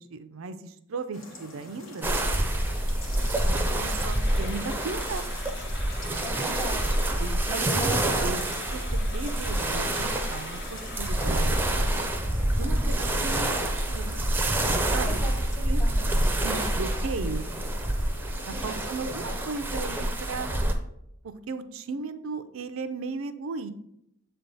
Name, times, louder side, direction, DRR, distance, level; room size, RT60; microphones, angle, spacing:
voice 1, 0.0-2.1 3.7-5.3 7.2-8.4 8.7-11.8 12.4-14.2 14.9-15.2 15.7-15.8 16.4-17.5 18.5-20.5 21.5-23.7, right 4 dB, 80° right, 11 dB, 0.5 m, -36 dB
sound 1, 1.1-19.4, left 2 dB, 80° left, 1.4 m, -46 dB
sound 2, 2.0-20.7, right 1 dB, 10° right, 0.5 m, -27 dB
sound 3, 3.5-12.0, left 4 dB, 55° left, 0.7 m, -44 dB
voice 2, 6.2-7.0 7.5-8.3 12.6-13.0 15.2-16.1 18.5-18.7, right 1 dB, 20° left, 3 dB, 0.8 m, -37 dB
7.5 x 3.4 x 3.9 m, 0.78 s
head